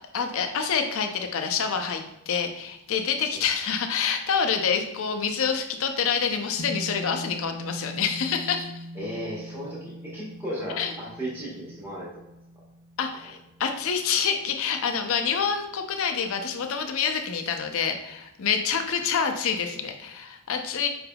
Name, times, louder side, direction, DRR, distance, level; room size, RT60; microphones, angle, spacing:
voice 1, 0.1-8.8 10.8-10.9 13.0-20.9, left 6 dB, 60° left, 6 dB, 0.5 m, -27 dB
sound 1, 6.6-15.0, equal, 85° right, 0.8 m, -41 dB
voice 2, 8.9-12.1, equal, 10° right, -8 dB, 1.1 m, -35 dB
4.8 x 3.3 x 2.2 m, 0.95 s
head